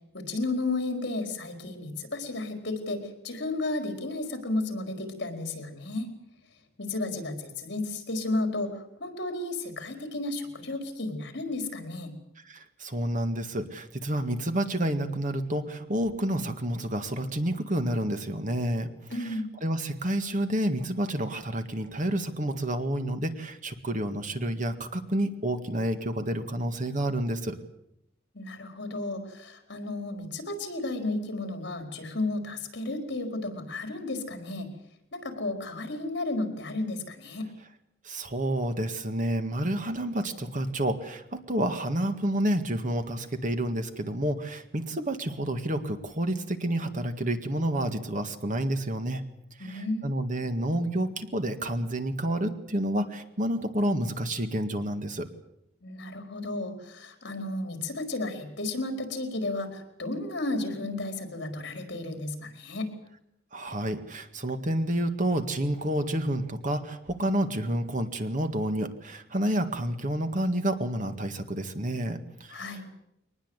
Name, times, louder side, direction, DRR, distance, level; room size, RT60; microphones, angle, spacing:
voice 1, 0.1-6.1 6.8-12.1 19.1-19.5 28.3-34.7 35.1-37.5 49.6-50.1 55.8-62.9 72.5-72.8, left 2 dB, 60° left, 6 dB, 4.6 m, -33 dB
voice 2, 12.5-18.9 19.2-19.3 19.6-27.6 38.0-49.2 49.6-55.3 63.5-72.9, right 1 dB, 40° right, 8 dB, 1.8 m, -29 dB
23.0 x 20.0 x 8.2 m, 0.80 s
head